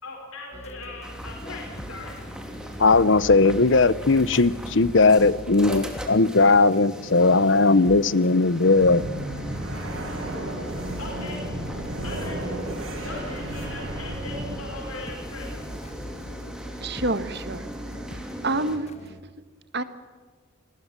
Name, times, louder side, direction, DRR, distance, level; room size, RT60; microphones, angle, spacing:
voice 1, 0.0-2.1 11.0-11.4 12.0-12.4 13.0-15.5, left 2 dB, 90° left, 1 dB, 4.4 m, -39 dB
sound 1, 0.5-19.2, equal, 30° left, 1.8 m, -42 dB
sound 2, 1.0-18.8, equal, 5° right, 2.8 m, -39 dB
voice 2, 2.8-9.0, left 3 dB, 60° left, 18 dB, 0.8 m, -18 dB
sound 3, 8.7-14.6, right 1 dB, 75° right, 7.8 m, -33 dB
voice 3, 16.8-17.7 18.4-18.9 19.7-19.8, right 2 dB, 50° right, 11 dB, 1.5 m, -27 dB
29.0 x 20.0 x 7.5 m, 1.5 s
head